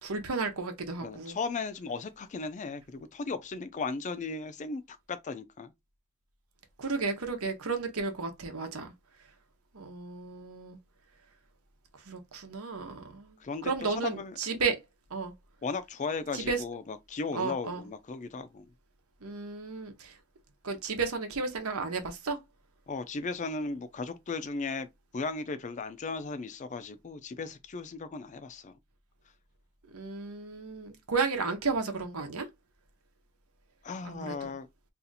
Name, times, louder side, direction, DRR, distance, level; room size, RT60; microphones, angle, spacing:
voice 1, 0.0-1.4 6.8-8.9 9.7-10.8 12.1-14.8 15.1-15.3 16.3-16.6 17.3-17.9 19.2-20.2 20.6-22.4 29.9-32.5 34.0-34.5, right 4 dB, 85° right, 0.9 m, -33 dB
voice 2, 1.0-5.7 13.4-14.4 15.6-18.7 22.9-24.9 25.1-28.7 33.8-34.7, left 4 dB, 35° left, 0.4 m, -36 dB
2.7 x 2.4 x 3.9 m
head